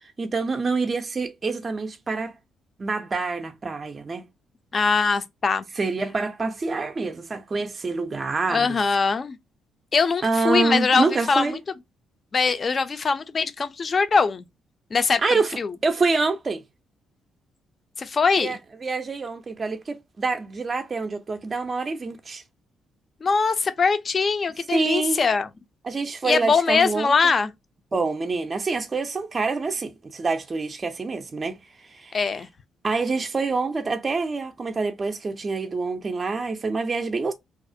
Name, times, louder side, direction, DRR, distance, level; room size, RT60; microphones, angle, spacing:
voice 1, 0.0-2.3 2.8-4.2 5.8-8.8 10.2-11.6 15.2-15.5 15.8-16.6 18.4-22.4 24.7-25.2 25.8-27.1 27.9-32.2 32.8-37.3, right 4 dB, 30° right, 0.4 m, -26 dB
voice 2, 4.7-5.6 8.5-9.4 9.9-11.6 12.3-14.5 14.9-15.2 15.5-15.7 18.0-18.6 23.2-25.5 26.2-27.5 32.1-32.5, left 5 dB, 40° left, 0.4 m, -22 dB
2.4 x 2.0 x 2.5 m
cardioid pair, 90°, 0 cm